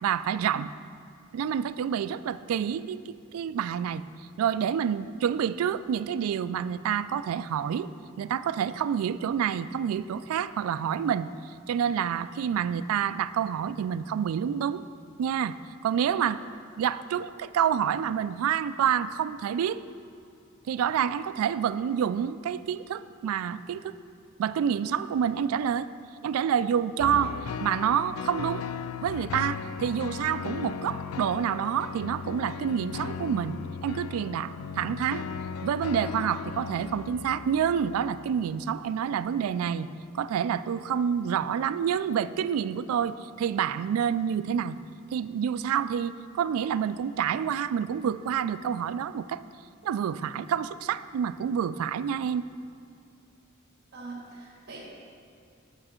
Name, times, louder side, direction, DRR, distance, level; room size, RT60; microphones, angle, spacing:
voice 1, 0.0-0.7 1.3-4.0 4.4-7.9 8.2-11.3 11.7-14.8 15.2-15.6 15.8-16.4 16.8-19.8 20.7-24.0 24.4-25.9 26.2-28.7 29.0-35.2 35.6-39.9 40.1-44.8 45.1-49.4 49.8-52.5, right 8 dB, 90° right, 16 dB, 0.3 m, -28 dB
sound 1, 27.0-39.4 40.0-40.1, left 7 dB, 75° left, 0.3 m, -37 dB
voice 2, 53.9-54.8, right 3 dB, 55° right, -5 dB, 1.8 m, -42 dB
8.9 x 6.4 x 4.4 m, 2.5 s
head